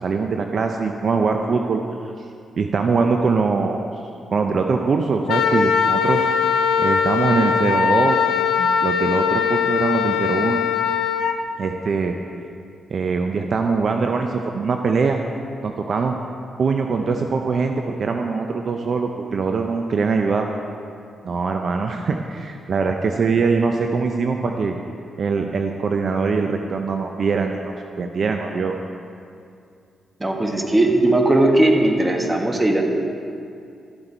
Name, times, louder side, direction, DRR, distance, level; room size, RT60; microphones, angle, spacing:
voice 1, 0.0-1.8 2.6-3.9 4.3-6.3 6.8-8.2 8.6-10.6 11.6-12.2 12.9-15.2 15.6-16.1 16.6-20.5 21.2-24.8 25.2-28.8, right 4 dB, 60° right, 4 dB, 0.6 m, -22 dB
Wind instrument woodwind instrument, 5.3-11.3, left 6 dB, 80° left, 0.6 m, -20 dB
voice 2, 30.2-32.8, right 1 dB, 20° right, 2 dB, 1.6 m, -18 dB
13.0 x 8.1 x 4.5 m, 2.4 s
supercardioid pair, 55°, 0 cm